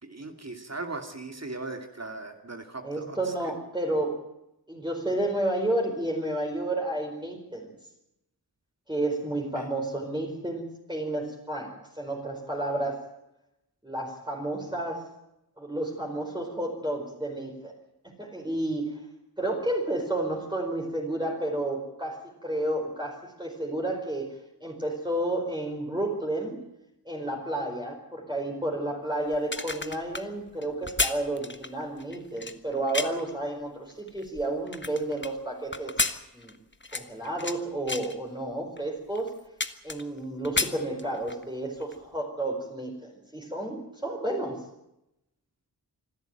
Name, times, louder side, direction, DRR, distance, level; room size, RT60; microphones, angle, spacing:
voice 1, 0.0-3.2 9.6-9.7, right 3 dB, 40° right, 5 dB, 2.6 m, -38 dB
voice 2, 2.8-4.2 4.7-7.7 8.9-13.0 13.8-15.0 15.6-17.7 18.0-19.0 19.4-24.3 24.6-26.6 27.0-36.0 36.3-36.6 36.9-39.4 39.8-44.6, right 1 dB, 10° right, 0 dB, 4.9 m, -31 dB
sound 1, 29.3-33.3 33.9-35.3 35.7-37.6 37.9-38.2 38.8-38.9 39.1-40.2 40.4-41.4 41.8-42.0, left 3 dB, 30° left, 1.4 m, -32 dB
25.5 x 13.0 x 9.1 m, 0.88 s
wide cardioid pair, 70°, 40 cm